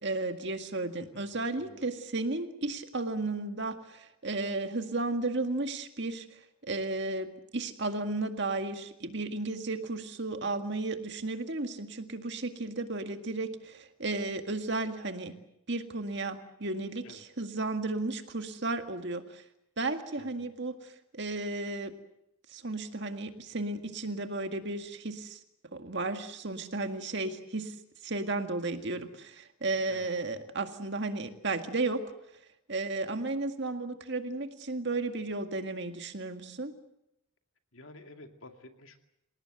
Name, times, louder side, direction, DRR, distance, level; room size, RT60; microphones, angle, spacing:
voice 1, 0.0-15.3 15.7-19.4 19.8-21.9 22.5-25.4 25.7-27.8 28.0-32.0 32.7-36.7, right 2 dB, 55° right, 7 dB, 2.0 m, -34 dB
voice 2, 1.1-1.9 17.0-17.2 20.2-20.5 29.9-30.1 37.7-39.0, left 2 dB, 65° left, 5 dB, 2.5 m, -52 dB
28.0 x 18.0 x 8.1 m, 0.83 s
head